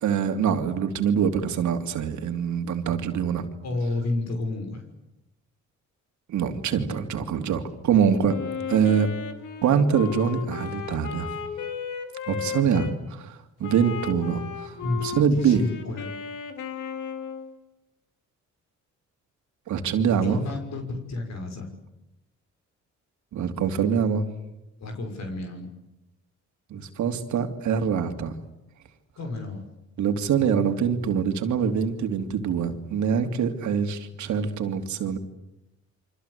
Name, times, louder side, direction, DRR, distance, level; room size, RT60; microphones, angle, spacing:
voice 1, 0.0-3.4 6.3-8.4 8.7-9.1 9.6-11.4 12.3-14.7 15.0-15.7 19.7-20.4 23.3-24.3 26.7-28.3 30.0-35.2, right 7 dB, 75° right, 6 dB, 2.9 m, -24 dB
voice 2, 3.6-4.8 14.8-15.0 15.3-16.0 20.2-21.7 24.8-25.7 29.2-29.6, left 2 dB, 60° left, 4 dB, 6.2 m, -31 dB
Wind instrument woodwind instrument, 8.3-13.0 13.6-17.6, left 7 dB, 80° left, 3.3 m, -35 dB
28.5 x 25.0 x 8.3 m, 0.92 s
cardioid pair, 90°, 30 cm